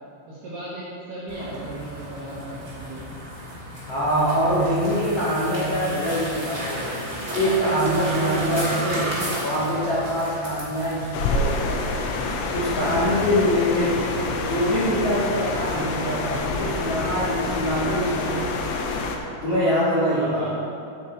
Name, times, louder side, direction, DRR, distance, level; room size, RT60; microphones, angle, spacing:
voice 1, 0.3-3.0 20.1-20.6, right 1 dB, 65° right, -8 dB, 2.2 m, -36 dB
sound 1, 1.3-17.8, equal, 25° right, 1.7 m, -34 dB
voice 2, 3.9-12.1 12.5-14.0 14.5-18.7 19.4-20.5, equal, 70° left, -9 dB, 1.4 m, -24 dB
sound 2, 11.1-19.2, left 3 dB, 85° left, 3.4 m, -27 dB
9.3 x 9.1 x 4.4 m, 2.6 s
omnidirectional pair, 5.9 m